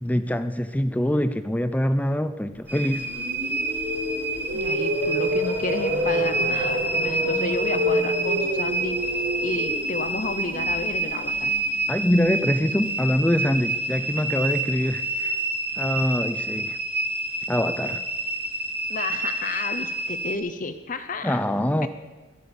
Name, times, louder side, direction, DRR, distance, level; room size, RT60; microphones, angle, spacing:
voice 1, 0.0-3.1 11.9-15.4 15.8-16.8 17.5-18.0 21.2-21.9, equal, 5° left, 11 dB, 0.5 m, -24 dB
sound 1, 2.7-20.4, right 2 dB, 10° right, 1.3 m, -28 dB
sound 2, 2.7-12.8, equal, 90° right, 3.9 m, -28 dB
voice 2, 4.5-9.0 9.4-11.5 18.9-21.4 21.8-21.9, left 3 dB, 40° left, 10 dB, 0.8 m, -31 dB
22.5 x 8.5 x 7.0 m, 1.2 s
head